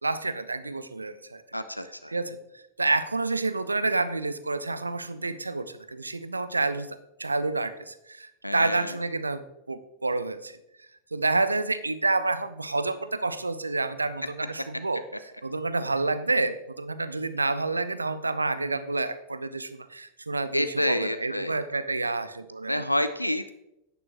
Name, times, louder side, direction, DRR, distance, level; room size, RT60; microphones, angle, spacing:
voice 1, 0.0-1.4 2.1-10.6 11.1-15.0 15.4-22.8, right 3 dB, 80° right, 13 dB, 0.5 m, -29 dB
voice 2, 1.5-2.1 8.4-8.9 20.5-21.6 22.7-23.5, left 1 dB, 90° left, 11 dB, 0.4 m, -28 dB
10.5 x 9.3 x 2.9 m, 0.87 s
figure-of-eight pair, 90°, 0 cm